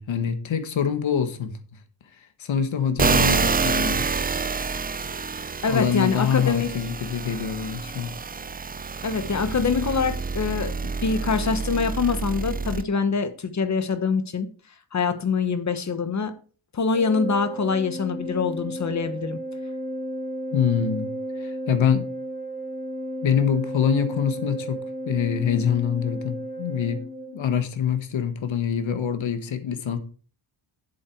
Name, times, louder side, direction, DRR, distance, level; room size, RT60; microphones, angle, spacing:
voice 1, 0.0-1.6 2.4-4.1 5.7-8.1 20.5-21.1 21.4-22.1 23.2-24.8 25.0-27.0 27.3-30.0, left 7 dB, 65° left, 1.5 m, -25 dB
sound 1, 3.0-12.8, right 5 dB, 20° right, 0.3 m, -27 dB
voice 2, 5.6-6.7 9.0-14.5 14.9-16.3 16.7-19.4, left 5 dB, 35° left, 1.1 m, -24 dB
Organ, 16.9-27.7, equal, 15° left, 4.3 m, -33 dB
7.7 x 7.7 x 4.6 m
wide cardioid pair, 140°, 49 cm